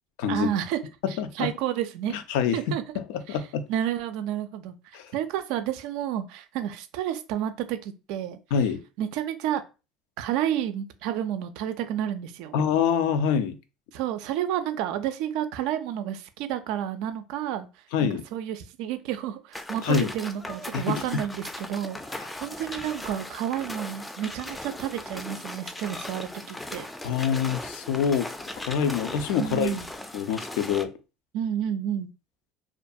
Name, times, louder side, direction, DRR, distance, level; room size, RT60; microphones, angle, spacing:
voice 1, 0.3-0.8 1.1-2.2 2.5-2.8 3.3-3.4 3.7-4.7 5.1-8.4 9.0-9.6 10.2-12.6 13.9-17.7 18.0-26.9 29.4-29.9 31.3-32.1, right 10 dB, 75° right, 0.3 m, -30 dB
voice 2, 1.0-1.5 2.1-2.6 3.1-3.6 4.9-5.1 8.5-8.8 12.5-13.6 17.9-18.2 19.8-20.1 20.7-21.0 27.0-28.3 28.6-29.8 30.1-30.9, left 7 dB, 80° left, 0.4 m, -25 dB
sound 1, 19.5-30.8, left 1 dB, 10° left, 0.4 m, -38 dB
2.4 x 2.2 x 2.6 m
supercardioid pair, 85°, 0 cm